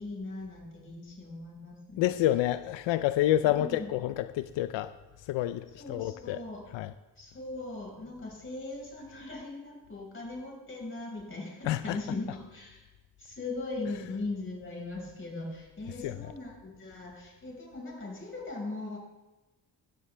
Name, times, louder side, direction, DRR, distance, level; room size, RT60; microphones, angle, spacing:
voice 1, 0.0-2.1 3.5-3.9 5.8-6.6 7.2-12.8 13.2-19.0, left 2 dB, 30° left, -1 dB, 4.9 m, -39 dB
voice 2, 2.0-4.9 5.2-6.4 6.7-6.9 11.7-12.0 16.0-16.1, left 13 dB, 85° left, 12 dB, 0.5 m, -28 dB
16.5 x 12.5 x 3.3 m, 1.1 s
cardioid pair, 125°, 43 cm